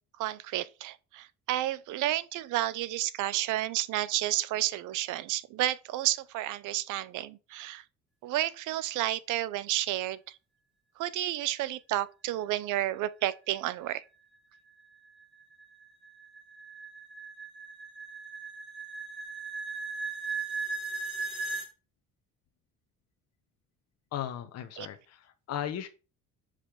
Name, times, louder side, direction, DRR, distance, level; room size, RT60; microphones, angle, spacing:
voice 1, 0.2-7.8 8.2-10.4 11.0-14.0 24.8-24.9, right 14 dB, 75° right, 0.6 m, -31 dB
sound 1, 14.5-21.7, right 4 dB, ahead, 2.0 m, -38 dB
voice 2, 24.1-25.9, left 10 dB, 55° left, 0.9 m, -36 dB
5.6 x 5.0 x 5.1 m
cardioid pair, 130°, 31 cm